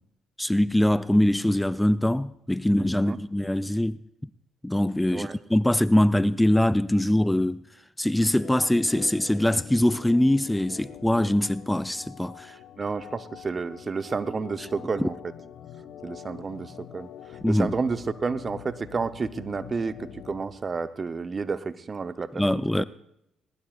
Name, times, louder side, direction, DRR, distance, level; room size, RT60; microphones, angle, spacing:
voice 1, 0.4-4.0 4.6-7.6 8.0-12.5 17.4-17.7 22.4-22.8, left 1 dB, 10° left, 0.5 m, -23 dB
Organ, 8.3-20.5, left 9 dB, 70° left, 1.2 m, -44 dB
voice 2, 12.8-15.1 16.0-17.1 17.5-22.8, right 4 dB, 40° right, 0.9 m, -31 dB
20.5 x 19.0 x 2.5 m
hypercardioid pair, 50°, 0 cm